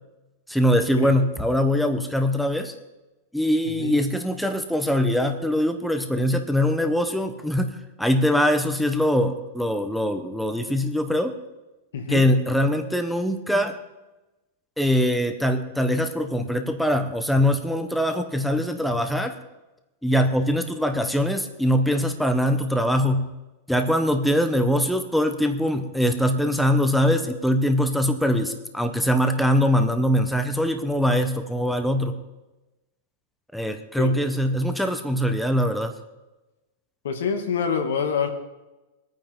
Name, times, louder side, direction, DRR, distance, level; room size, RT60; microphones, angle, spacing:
voice 1, 0.5-2.7 3.3-11.4 12.1-13.8 14.8-19.3 20.0-23.3 23.7-32.2 33.5-35.9, equal, ahead, 6 dB, 1.0 m, -22 dB
voice 2, 3.7-4.0 11.9-12.2 34.0-34.1 37.0-38.3, left 6 dB, 85° left, 5 dB, 2.3 m, -26 dB
23.5 x 9.2 x 3.7 m, 1.0 s
supercardioid pair, 140°, 0 cm